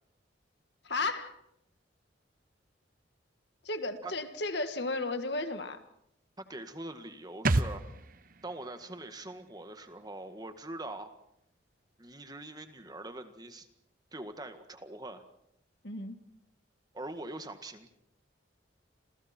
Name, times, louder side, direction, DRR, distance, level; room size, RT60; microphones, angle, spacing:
voice 1, 0.8-1.4 3.6-5.8 15.8-16.2, left 2 dB, 65° left, 9 dB, 1.9 m, -34 dB
voice 2, 6.4-7.9 8.4-11.2 12.0-13.7 14.1-15.2 16.9-17.9, right 2 dB, 20° right, 8 dB, 1.8 m, -43 dB
sound 1, 7.4-11.0 11.2-11.3, right 2 dB, 50° right, 1.1 m, -34 dB
29.5 x 27.5 x 4.5 m, 0.76 s
head